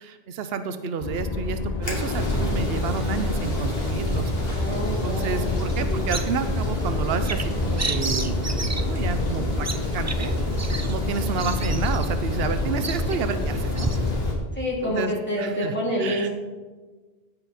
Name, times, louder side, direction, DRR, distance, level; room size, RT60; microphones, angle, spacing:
voice 1, 0.0-4.7 5.0-8.3 8.8-9.7 9.9-10.3 10.8-13.9 14.8-15.1 15.4-15.7 16.0-16.3, right 5 dB, 75° right, 9 dB, 0.9 m, -30 dB
sound 1, 1.0-14.4, left 3 dB, 45° left, 0.8 m, -28 dB
sound 2, 1.8-14.3, equal, 70° left, 2.5 m, -30 dB
voice 2, 4.6-6.1 11.6-11.7 14.5-16.3, equal, 10° left, -5 dB, 3.0 m, -28 dB
Bird vocalization bird call bird song, 5.7-14.0, right 3 dB, 25° right, 0.4 m, -34 dB
16.0 x 5.6 x 4.3 m, 1.3 s
omnidirectional pair, 1.0 m